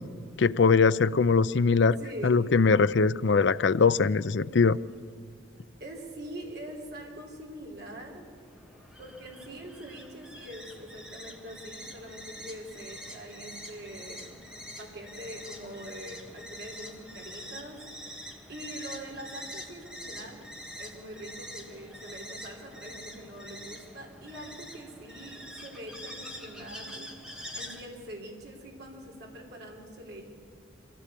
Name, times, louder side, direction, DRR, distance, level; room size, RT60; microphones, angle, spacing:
voice 1, 0.4-2.0 2.2-4.8, left 4 dB, 60° left, 16 dB, 0.5 m, -22 dB
voice 2, 2.0-2.4 5.8-8.2 9.0-14.4 14.8-17.8 18.3-20.5 20.7-27.1 27.5-30.3, right 1 dB, 55° right, 0 dB, 3.7 m, -43 dB
sound 1, 8.1-27.8, equal, 5° right, 1.6 m, -45 dB
24.0 x 16.0 x 8.3 m, 2.3 s
head